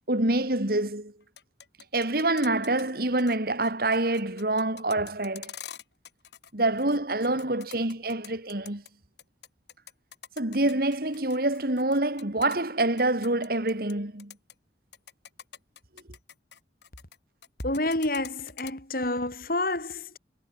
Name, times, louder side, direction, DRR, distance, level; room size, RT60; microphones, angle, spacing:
voice 1, 0.1-1.1 1.9-5.5 6.5-8.8 10.4-14.3, right 2 dB, 55° right, 2.8 m, -26 dB
sound 1, 1.2-2.9 3.2-3.4 3.6-6.5 6.8-8.9 9.2-13.9 14.2-14.5 14.9-17.2 17.4-18.7, left 9 dB, 70° left, 4.8 m, -45 dB
voice 2, 17.6-20.2, left 2 dB, 55° left, 5.3 m, -29 dB
head